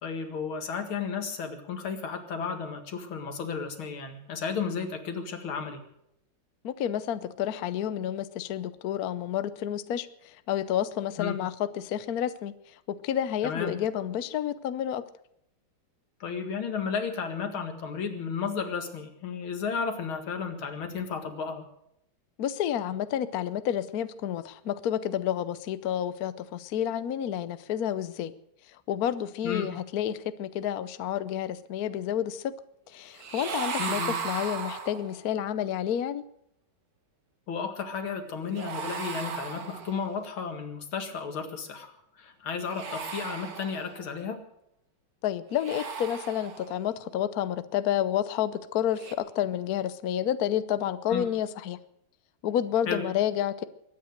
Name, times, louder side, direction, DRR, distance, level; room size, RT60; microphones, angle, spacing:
voice 1, 0.0-5.8 11.2-11.4 13.4-13.7 16.2-21.6 29.4-29.7 33.8-34.2 37.5-44.5 51.1-51.3 52.9-53.0, left 6 dB, 80° left, 6 dB, 2.7 m, -33 dB
voice 2, 6.6-15.0 22.4-28.3 28.7-32.5 32.9-36.2 45.2-51.8 52.4-53.6, left 10 dB, 60° left, 14 dB, 1.0 m, -30 dB
sound 1, 33.2-35.3 38.5-40.2 42.6-44.1 45.5-46.9 48.9-49.1, right 5 dB, 50° right, 1.8 m, -36 dB
22.5 x 9.6 x 6.5 m, 0.76 s
omnidirectional pair, 2.2 m